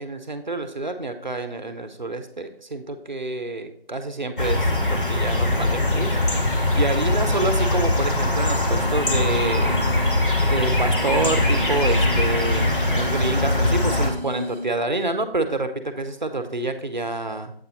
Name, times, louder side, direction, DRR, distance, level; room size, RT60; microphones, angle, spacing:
voice 1, 0.0-6.2 6.7-9.8 10.4-17.5, right 2 dB, 50° right, 9 dB, 0.7 m, -28 dB
sound 1, 4.4-14.1, left 1 dB, 60° left, 1.4 m, -21 dB
sound 2, 8.3-14.8, left 1 dB, 85° left, 2.6 m, -34 dB
8.1 x 4.0 x 3.9 m, 0.64 s
figure-of-eight pair, 165°, 31 cm